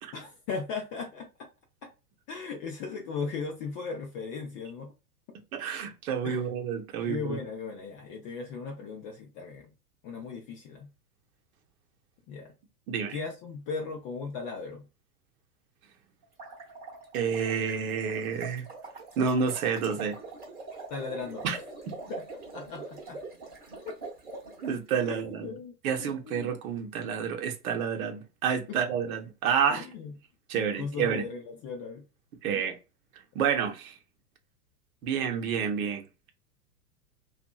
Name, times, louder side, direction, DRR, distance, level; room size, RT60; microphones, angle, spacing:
voice 1, 0.1-1.5 1.8-1.9 2.3-4.9 6.2-6.5 7.0-9.7 10.0-10.9 12.3-12.5 13.1-14.9 20.9-21.6 22.1-22.2 22.5-23.2 23.9-24.0 24.3-24.4 25.1-26.5 28.7-28.8 29.7-30.1 30.8-32.0 32.5-32.6, left 5 dB, 30° left, 0.4 m, -37 dB
voice 2, 5.5-7.4 12.9-13.2 17.1-18.6 19.2-20.2 21.4-21.6 24.6-25.5 25.8-29.8 30.5-31.3 32.4-32.7 33.3-33.9 35.0-36.0, right 7 dB, 65° right, 0.8 m, -29 dB
sound 1, 16.2-24.7, right 3 dB, 20° right, 1.0 m, -44 dB
2.7 x 2.5 x 2.2 m
hypercardioid pair, 110°, 46 cm